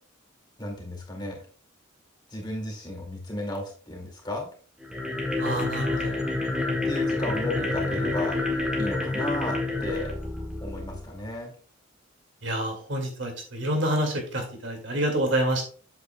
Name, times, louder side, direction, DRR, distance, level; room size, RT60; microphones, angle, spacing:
voice 1, 0.6-1.4 2.3-4.5 6.8-8.4 8.8-10.1 10.6-11.5, left 1 dB, 20° left, 1 dB, 2.2 m, -34 dB
sound 1, 4.8-11.1, left 2 dB, 5° right, 1.7 m, -28 dB
voice 2, 5.4-6.2 12.4-15.6, right 1 dB, 65° right, 2 dB, 2.2 m, -27 dB
8.2 x 8.1 x 2.3 m, 0.41 s
head